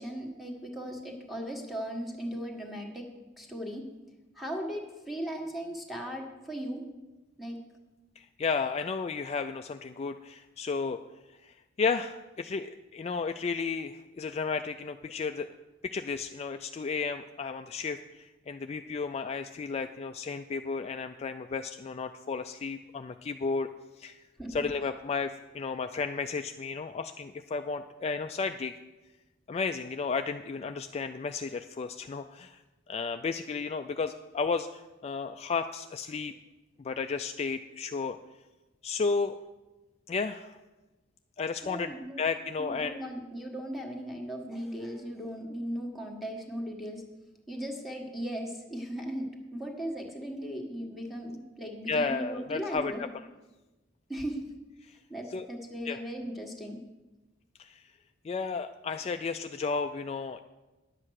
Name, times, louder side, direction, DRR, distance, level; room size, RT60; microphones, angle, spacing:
voice 1, 0.0-3.1 3.4-3.9 4.3-6.8 7.4-7.6 24.4-24.6 41.6-42.2 42.6-47.0 47.5-53.0 54.1-54.5 55.1-56.8, equal, ahead, -1 dB, 1.6 m, -37 dB
voice 2, 8.2-11.0 11.4-15.5 15.8-23.7 24.0-24.2 24.5-28.7 29.5-32.6 32.9-36.3 36.8-38.2 38.8-39.3 40.1-40.6 41.4-43.0 51.9-53.1 54.9-55.0 55.3-55.5 55.8-56.0 57.6-57.8 58.2-60.4, left 4 dB, 35° left, 7 dB, 0.3 m, -33 dB
10.5 x 7.8 x 6.4 m, 1.1 s
head